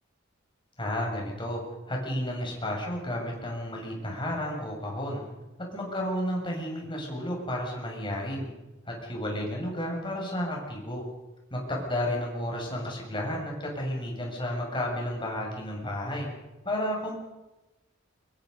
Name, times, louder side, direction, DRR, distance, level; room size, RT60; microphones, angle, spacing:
voice 1, 0.8-1.6 1.9-5.2 5.7-8.5 8.9-11.1 11.5-16.3 16.6-17.2, left 1 dB, 25° left, -1 dB, 7.1 m, -32 dB
24.5 x 23.0 x 5.5 m, 1.0 s
head